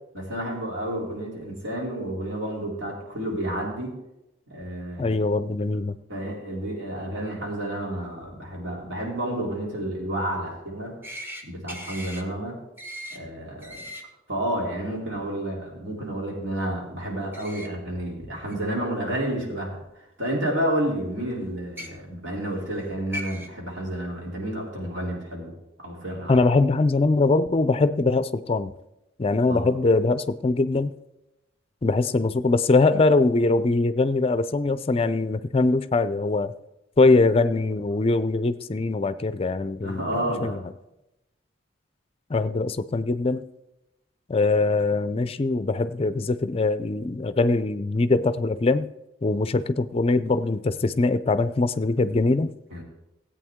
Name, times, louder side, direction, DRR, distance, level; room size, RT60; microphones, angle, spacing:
voice 1, 0.1-4.0 4.5-5.2 6.1-11.0 11.4-12.6 13.1-13.9 14.3-19.8 20.2-25.5 25.8-26.4 29.5-29.7 39.8-40.6 52.7-52.8, right 1 dB, 80° right, -2 dB, 3.2 m, -30 dB
voice 2, 5.0-6.0 26.3-28.7 29.2-30.9 31.8-36.5 37.0-40.6 42.3-43.5 44.3-48.9 49.2-52.5, left 3 dB, 30° left, 13 dB, 0.4 m, -22 dB
sound 1, 11.0-11.4 11.7-12.2 12.8-13.2 13.6-14.0 17.3-17.7 18.5-18.6 19.8-19.9 21.6-21.9 22.8-22.9 23.1-23.5, equal, 10° right, 1.0 m, -37 dB
16.5 x 8.5 x 3.6 m, 0.92 s
head